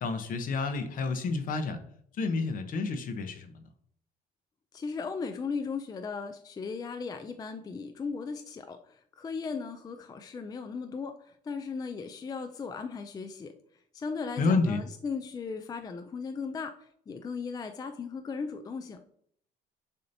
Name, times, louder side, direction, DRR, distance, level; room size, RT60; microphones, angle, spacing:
voice 1, 0.0-1.8 2.2-3.5 14.4-14.8, left 3 dB, 55° left, 8 dB, 0.8 m, -29 dB
voice 2, 4.7-13.5 13.9-16.7 17.1-19.0, left 5 dB, 20° left, 7 dB, 0.4 m, -37 dB
6.5 x 2.8 x 2.7 m, 0.65 s
cardioid pair, 110°, 17 cm